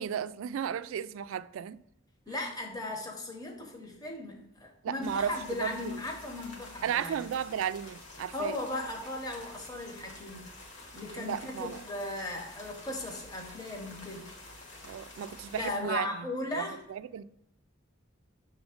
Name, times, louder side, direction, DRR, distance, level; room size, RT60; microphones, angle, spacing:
voice 1, 0.0-1.8 4.8-5.8 6.8-8.6 11.2-11.8 14.8-16.6 16.9-17.2, right 8 dB, 85° right, 0.3 m, -34 dB
voice 2, 2.3-7.3 8.3-10.5 10.9-14.3 15.5-16.8, left 2 dB, 20° left, 0.9 m, -37 dB
sound 1, 5.0-15.8, left 2 dB, 65° left, 1.5 m, -49 dB
6.3 x 3.5 x 4.9 m
head